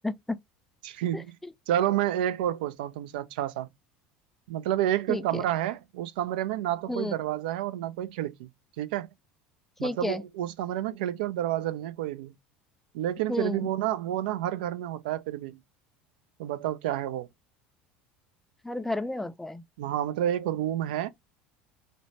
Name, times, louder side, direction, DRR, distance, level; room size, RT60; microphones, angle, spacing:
voice 1, 0.0-0.4 1.1-1.2 5.1-5.4 6.9-7.1 9.8-10.2 13.3-13.7 18.6-19.6, left 1 dB, 5° left, 0.4 m, -31 dB
voice 2, 0.8-1.3 1.7-3.7 4.5-8.5 8.8-9.1 9.8-12.3 12.9-15.6 16.4-17.3 19.8-21.1, right 12 dB, 80° right, 0.4 m, -29 dB
2.6 x 2.0 x 3.1 m
hypercardioid pair, 85°, 5 cm